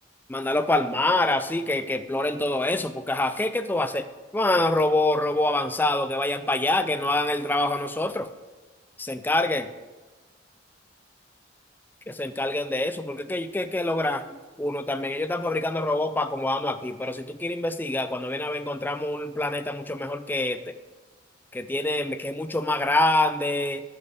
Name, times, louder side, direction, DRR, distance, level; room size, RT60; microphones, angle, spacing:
voice 1, 0.3-4.1 4.3-8.3 9.0-9.6 12.1-20.6 21.5-23.8, left 2 dB, 10° left, 10 dB, 0.4 m, -26 dB
6.6 x 5.7 x 6.4 m, 1.2 s
head